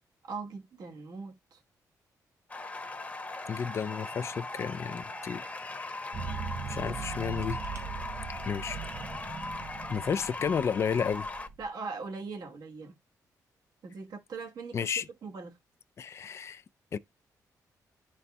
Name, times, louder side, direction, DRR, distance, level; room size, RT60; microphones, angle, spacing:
voice 1, 0.2-1.6 11.6-12.9 13.8-14.9 15.2-15.6, right 4 dB, 75° right, 1.3 m, -40 dB
sound 1, 2.5-11.5, left 2 dB, 20° left, 0.9 m, -39 dB
voice 2, 3.5-5.7 6.7-7.6 8.5-8.8 9.9-11.3 14.7-15.0 16.0-16.6 16.9-17.0, left 7 dB, 45° left, 0.3 m, -32 dB
sound 2, 6.1-11.7, right 6 dB, 45° right, 0.5 m, -40 dB
11.5 x 4.0 x 2.2 m
cardioid pair, 100°, 7 cm